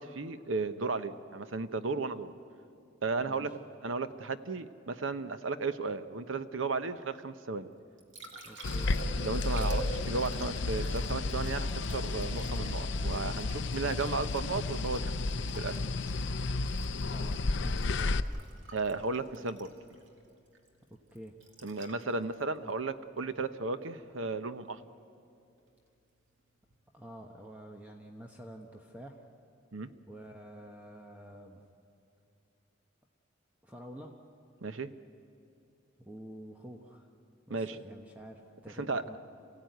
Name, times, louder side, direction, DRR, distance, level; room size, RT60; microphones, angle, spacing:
voice 1, 0.0-2.3 3.0-7.7 9.2-15.0 15.3-15.8 18.7-19.7 21.6-24.8 29.7-29.9 34.6-34.9 37.5-37.8 38.8-39.0, right 3 dB, 90° right, 11 dB, 0.9 m, -34 dB
voice 2, 3.2-3.5 8.4-8.9 17.0-18.1 21.1-21.4 26.9-29.2 30.1-31.6 33.6-34.1 36.0-37.1 37.5-39.2, right 1 dB, 10° right, 2 dB, 1.1 m, -48 dB
Liquid, 7.7-23.8 26.6-26.8, right 3 dB, 70° right, 2.5 m, -48 dB
sound 1, 8.6-18.2, left 3 dB, 65° left, 0.6 m, -32 dB
27.0 x 16.0 x 9.3 m, 2.6 s
head